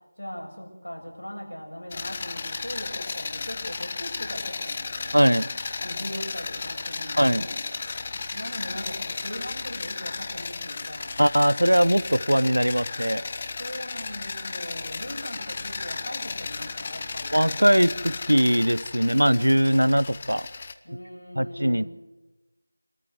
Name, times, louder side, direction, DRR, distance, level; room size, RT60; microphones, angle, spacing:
voice 1, 0.2-5.2 5.8-7.6 8.3-11.2 13.6-17.5 20.8-21.9, equal, 70° left, -1 dB, 7.1 m, -39 dB
sound 1, 1.9-20.7, left 4 dB, 20° left, 0.7 m, -34 dB
voice 2, 5.1-5.5 7.2-7.5 11.2-13.2 17.3-20.5 21.4-21.9, equal, 75° right, 18 dB, 0.8 m, -21 dB
24.0 x 13.5 x 8.1 m, 1.1 s
figure-of-eight pair, 170°, 0 cm